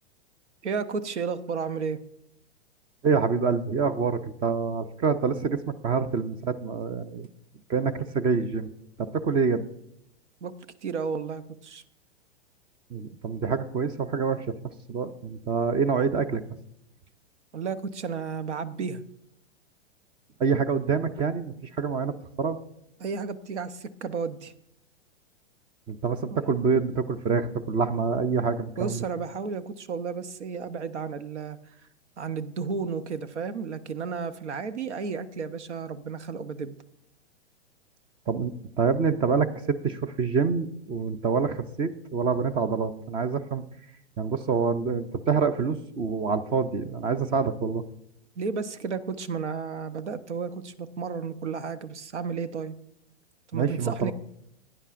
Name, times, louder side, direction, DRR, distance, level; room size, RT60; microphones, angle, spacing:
voice 1, 0.6-2.0 10.4-10.5 10.8-11.8 17.5-19.0 23.0-24.5 26.3-26.4 28.8-31.6 32.2-36.8 48.4-52.7 53.5-54.1, right 5 dB, 85° right, 13 dB, 0.9 m, -32 dB
voice 2, 3.0-7.3 7.7-8.7 9.0-9.6 12.9-16.4 20.4-22.6 25.9-29.0 38.3-43.6 44.2-47.8 53.5-54.1, right 5 dB, 15° right, 13 dB, 0.3 m, -26 dB
16.0 x 9.9 x 2.5 m, 0.76 s
hypercardioid pair, 125°, 34 cm